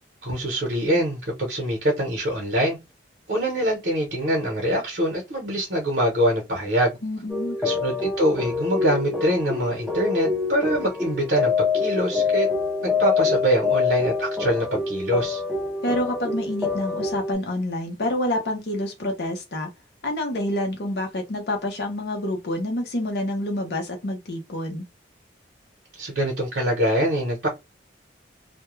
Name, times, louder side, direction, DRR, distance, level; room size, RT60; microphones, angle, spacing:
voice 1, 0.2-2.8 3.3-7.0 7.6-12.5 12.8-15.4 25.9-27.5, right 1 dB, 60° right, 0.8 m, -24 dB
voice 2, 7.0-7.6 15.8-19.7 20.0-24.9, left 1 dB, 60° left, 0.6 m, -28 dB
sound 1, 7.3-17.3, left 5 dB, ahead, 0.5 m, -26 dB
2.2 x 2.1 x 3.0 m
head